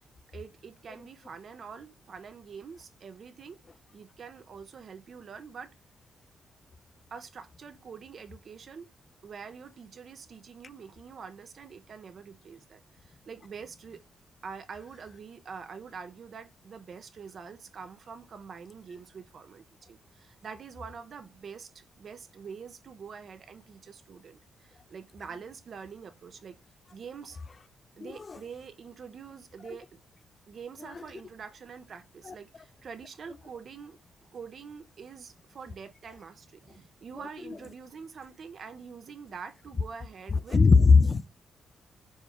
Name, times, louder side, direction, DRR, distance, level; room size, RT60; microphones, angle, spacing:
voice 1, 0.3-3.6 3.9-5.7 7.1-8.9 9.2-14.0 14.4-26.6 26.9-27.4 28.0-30.0 30.5-34.0 34.3-40.6, right 6 dB, 55° right, 0.5 m, -45 dB
voice 2, 28.0-28.4 32.2-32.3 37.5-37.6 40.3-41.3, left 4 dB, 35° left, 0.3 m, -20 dB
4.3 x 2.3 x 4.3 m
cardioid pair, 100°, 0 cm